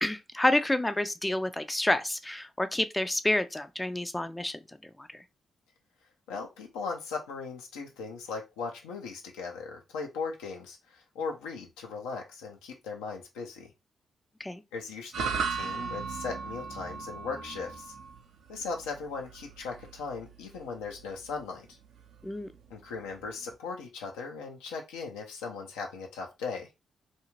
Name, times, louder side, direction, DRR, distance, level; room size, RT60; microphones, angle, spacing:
voice 1, 0.0-5.2 14.4-14.6 22.2-22.5, left 1 dB, 15° left, 0.4 m, -29 dB
voice 2, 6.3-13.7 14.7-17.9 18.5-21.7 22.7-26.7, left 4 dB, 85° left, 0.5 m, -38 dB
sound 1, 15.1-23.5, right 5 dB, 70° right, 0.5 m, -38 dB
2.5 x 2.4 x 3.0 m
hypercardioid pair, 40°, 0 cm